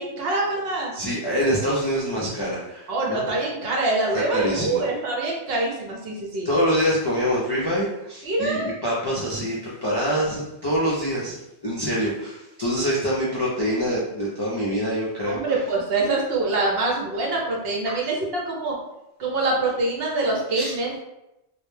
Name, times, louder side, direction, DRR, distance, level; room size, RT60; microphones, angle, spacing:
voice 1, 0.0-0.9 2.9-6.5 8.2-8.7 15.3-18.7 19.2-21.0, right 2 dB, 70° right, -2 dB, 0.8 m, -25 dB
voice 2, 0.9-3.2 4.1-4.9 6.4-15.4 17.9-18.0 20.5-20.7, equal, 45° left, -7 dB, 0.3 m, -25 dB
2.2 x 2.1 x 3.1 m, 0.90 s
omnidirectional pair, 1.1 m